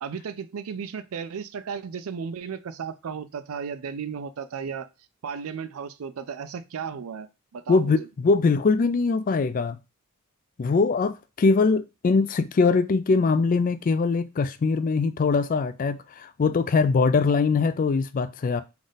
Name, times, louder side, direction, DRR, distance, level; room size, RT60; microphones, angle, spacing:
voice 1, 0.0-4.9 5.2-8.1, right 6 dB, 80° right, 0.4 m, -35 dB
voice 2, 7.7-9.8 10.6-18.6, left 4 dB, 40° left, 0.3 m, -22 dB
3.5 x 2.5 x 3.9 m
head